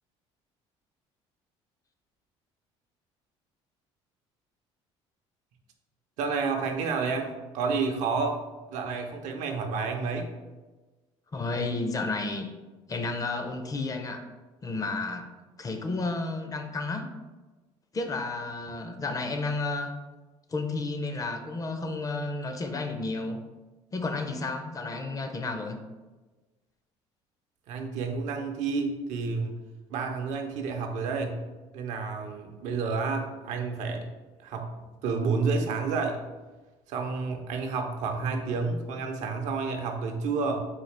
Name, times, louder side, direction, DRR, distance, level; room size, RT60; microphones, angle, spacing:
voice 1, 6.2-8.4 8.7-10.3 27.7-29.5 29.9-31.4 31.7-34.1 34.4-36.2 36.9-40.7, right 4 dB, 70° right, 4 dB, 0.6 m, -30 dB
voice 2, 11.3-12.5 12.9-14.2 14.6-15.3 15.6-17.0 17.9-19.9 20.5-23.4 23.9-25.8, left 3 dB, 25° left, 6 dB, 0.5 m, -32 dB
3.9 x 2.4 x 3.2 m, 1.2 s
supercardioid pair, 85°, 13 cm